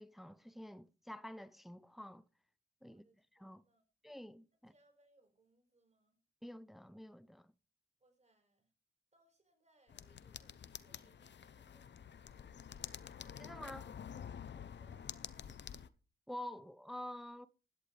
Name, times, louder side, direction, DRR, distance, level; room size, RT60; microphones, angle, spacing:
voice 1, 0.0-2.2 2.8-3.0 3.4-3.6 4.0-4.7 6.4-7.5 13.4-13.9 16.3-17.5, left 1 dB, ahead, 0.7 m, -48 dB
voice 2, 2.8-3.8 4.7-6.2 8.0-8.7 9.1-12.7 14.4-15.6, right 2 dB, 35° right, 5.1 m, -73 dB
sound 1, 9.9-15.9, left 8 dB, 70° left, 0.8 m, -49 dB
16.0 x 11.5 x 3.4 m
cardioid pair, 60°, 19 cm